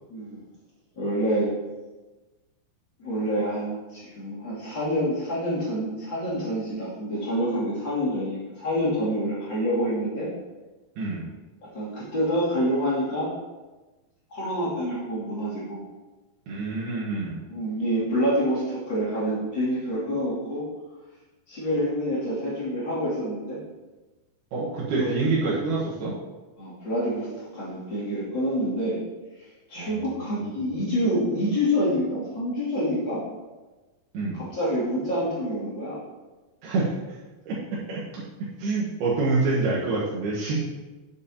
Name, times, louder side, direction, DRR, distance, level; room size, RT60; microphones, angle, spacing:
voice 1, 0.1-0.4 1.0-1.5 3.0-10.3 11.6-13.3 14.3-15.8 17.5-20.6 21.5-23.6 24.9-25.1 26.6-29.0 29.7-33.2 34.3-36.0, equal, 35° left, -8 dB, 2.8 m, -27 dB
voice 2, 11.0-11.3 16.5-17.4 24.5-26.1 29.7-30.1 30.4-30.6 34.1-34.4 36.6-37.2 37.5-37.6 37.9-38.2 38.6-40.6, right 3 dB, 90° right, -8 dB, 3.2 m, -27 dB
9.3 x 7.0 x 2.8 m, 1.2 s
omnidirectional pair, 4.3 m